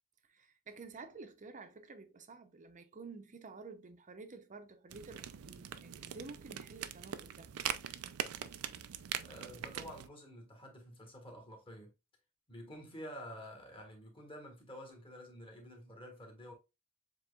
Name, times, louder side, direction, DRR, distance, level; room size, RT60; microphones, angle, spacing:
voice 1, 0.3-7.5, right 4 dB, 35° right, 0.7 m, -51 dB
Wooden fire, 4.9-10.1, right 9 dB, 80° right, 0.4 m, -42 dB
voice 2, 9.2-11.9 12.5-16.5, equal, 25° left, 1.5 m, -50 dB
7.3 x 3.0 x 2.4 m
head